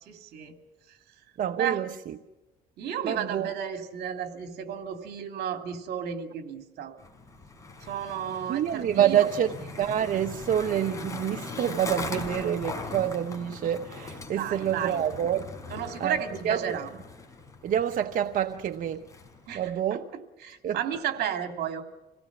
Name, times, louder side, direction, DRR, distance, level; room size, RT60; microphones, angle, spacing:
voice 1, 0.0-0.5 1.5-1.8 2.8-7.0 7.8-9.3 14.4-15.0 15.7-16.9 19.5-21.8, right 8 dB, 70° right, 2.7 m, -33 dB
voice 2, 1.4-2.1 3.0-3.5 8.5-15.5 16.0-16.2 16.4-16.7 17.6-19.1 19.5-20.0 20.6-20.8, right 10 dB, 55° right, 0.9 m, -27 dB
Skateboard, 7.0-19.7, left 3 dB, 20° left, 4.5 m, -40 dB
26.5 x 17.5 x 6.1 m
cardioid pair, 110°, 17 cm